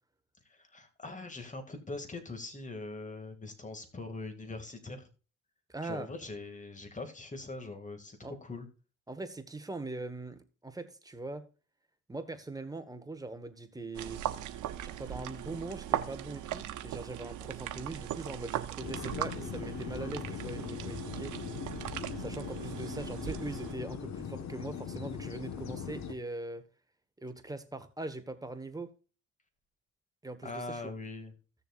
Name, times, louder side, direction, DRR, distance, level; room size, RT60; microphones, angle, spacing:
voice 1, 0.5-5.1 5.8-8.7 30.4-31.3, left 3 dB, 25° left, 2.3 m, -42 dB
voice 2, 5.7-6.1 8.2-8.3 9.1-11.4 12.1-14.2 14.8-21.3 22.2-26.6 27.2-28.9 30.2-30.9, right 2 dB, 10° right, 1.4 m, -41 dB
sound 1, 13.9-23.7, right 11 dB, 75° right, 1.0 m, -39 dB
sound 2, 18.8-26.1, left 7 dB, 65° left, 1.4 m, -40 dB
16.0 x 6.9 x 2.5 m
cardioid pair, 90°, 30 cm